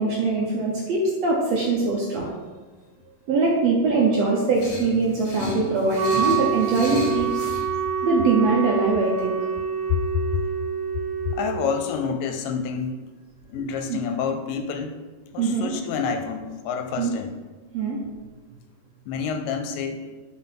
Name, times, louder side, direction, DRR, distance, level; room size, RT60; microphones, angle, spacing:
voice 1, 0.0-2.3 3.3-7.4 8.0-9.3 13.9-14.0 15.4-15.7 17.0-17.1 17.7-18.0, right 3 dB, 65° right, -3 dB, 1.7 m, -22 dB
sound 1, 4.6-7.6, left 2 dB, 45° left, 1.6 m, -34 dB
Wind instrument woodwind instrument, 5.9-11.8, right 7 dB, 85° right, 2.4 m, -27 dB
voice 2, 11.3-13.1 13.5-15.0 15.3-17.3 19.1-20.1, left 6 dB, 80° left, 7 dB, 2.1 m, -28 dB
5.8 x 4.9 x 5.8 m, 1.3 s
omnidirectional pair, 4.0 m